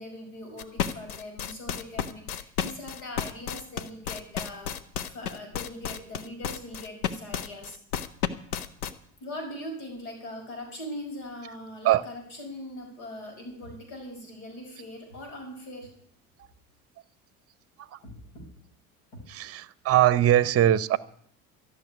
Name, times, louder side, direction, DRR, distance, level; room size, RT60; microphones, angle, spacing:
voice 1, 0.0-4.7 5.0-7.8 9.2-15.9 18.0-18.5 19.1-19.3, left 1 dB, 70° left, 3 dB, 5.8 m, -41 dB
sound 1, 0.6-8.9, left 8 dB, 85° left, 0.9 m, -31 dB
voice 2, 19.3-21.0, right 12 dB, 35° right, 19 dB, 0.7 m, -22 dB
13.5 x 6.6 x 10.0 m, 0.64 s
hypercardioid pair, 75°, 43 cm